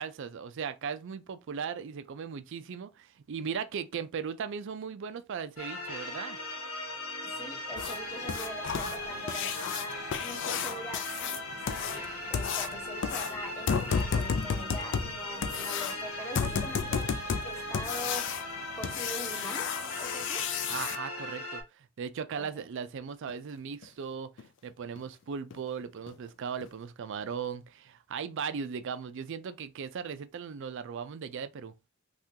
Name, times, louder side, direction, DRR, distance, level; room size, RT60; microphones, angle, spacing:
voice 1, 0.0-6.4 20.7-31.7, right 6 dB, 60° right, 0.4 m, -38 dB
sound 1, 5.6-21.6, left 1 dB, 90° left, 1.1 m, -38 dB
voice 2, 7.2-18.3 18.7-19.7 20.0-20.4 22.4-22.6, equal, 15° left, 0.9 m, -43 dB
sound 2, 7.8-21.0 23.3-23.4 23.8-23.9 24.4-24.5 25.0-25.1 25.5-25.7 26.1-26.2 26.6-26.7, left 6 dB, 60° left, 0.4 m, -33 dB
3.6 x 2.4 x 2.8 m
head